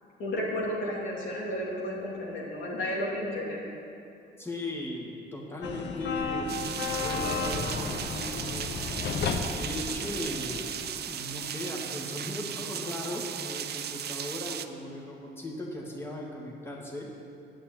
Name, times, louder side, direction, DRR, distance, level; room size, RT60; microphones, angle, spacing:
voice 1, 0.2-3.6, equal, 80° left, -4 dB, 2.8 m, -32 dB
voice 2, 4.4-8.7 9.5-10.7 11.0-17.1, left 1 dB, 10° left, -2 dB, 2.0 m, -37 dB
sound 1, 5.6-11.0, left 4 dB, 60° left, 1.0 m, -33 dB
sound 2, 6.5-14.7, right 9 dB, 55° right, 0.6 m, -36 dB
9.1 x 7.7 x 8.9 m, 2.6 s
cardioid pair, 90°, 20 cm